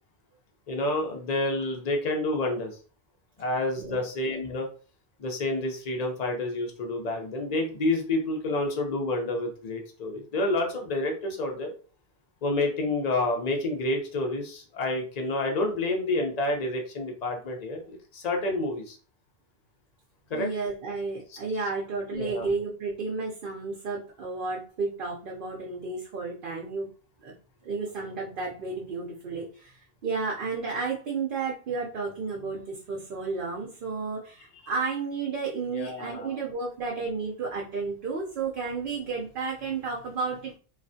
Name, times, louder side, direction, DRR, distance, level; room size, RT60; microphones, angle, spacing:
voice 1, 0.7-2.8 3.4-4.7 5.2-11.7 12.4-19.0 20.3-20.5 21.3-21.4 22.1-22.5 35.7-36.4, left 2 dB, 45° left, 2 dB, 0.7 m, -29 dB
voice 2, 20.3-26.9 27.2-27.3 27.6-40.5, right 4 dB, 60° right, -2 dB, 0.8 m, -32 dB
3.2 x 2.4 x 2.6 m, 0.39 s
omnidirectional pair, 1.1 m